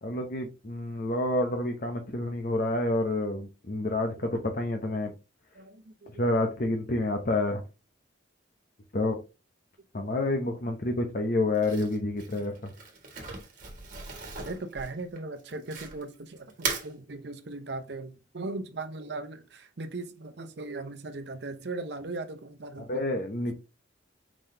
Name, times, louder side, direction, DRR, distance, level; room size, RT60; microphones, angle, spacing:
voice 1, 0.0-5.1 6.2-7.6 8.9-9.2 9.9-12.5 22.9-23.5, left 2 dB, 50° left, 0.7 m, -28 dB
voice 2, 4.2-4.5 5.5-6.5 10.0-10.1 14.4-23.1, right 3 dB, 65° right, 0.8 m, -39 dB
Crumpling crinkling, 11.5-16.1 16.5-16.9, right 4 dB, 45° right, 1.6 m, -37 dB
5.0 x 3.8 x 2.7 m
head